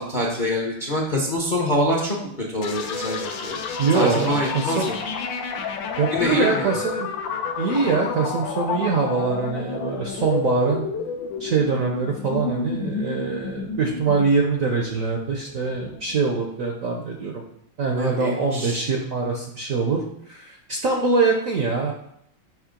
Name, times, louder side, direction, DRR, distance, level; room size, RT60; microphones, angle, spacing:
voice 1, 0.0-3.6 3.9-4.9 6.1-6.7 18.0-18.8, left 1 dB, 35° left, -2 dB, 0.7 m, -25 dB
sound 1, 2.6-16.2, left 5 dB, 75° left, 1.4 m, -30 dB
voice 2, 3.8-4.9 6.0-7.1 7.6-10.9 11.4-17.4 17.8-20.0 20.3-21.9, right 4 dB, 60° right, 1 dB, 0.9 m, -23 dB
6.4 x 3.2 x 5.1 m, 0.73 s
omnidirectional pair, 2.1 m